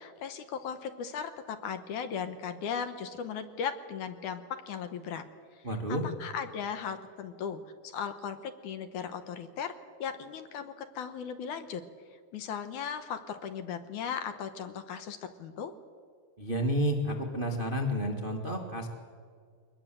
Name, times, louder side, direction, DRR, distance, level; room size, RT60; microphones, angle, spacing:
voice 1, 0.0-5.2 5.6-9.7 10.0-11.8 12.3-15.7, left 7 dB, 70° left, 9 dB, 2.2 m, -37 dB
voice 2, 5.6-6.0 16.4-18.9, equal, 70° right, 2 dB, 0.5 m, -30 dB
23.0 x 20.0 x 7.5 m, 2.1 s
omnidirectional pair, 4.2 m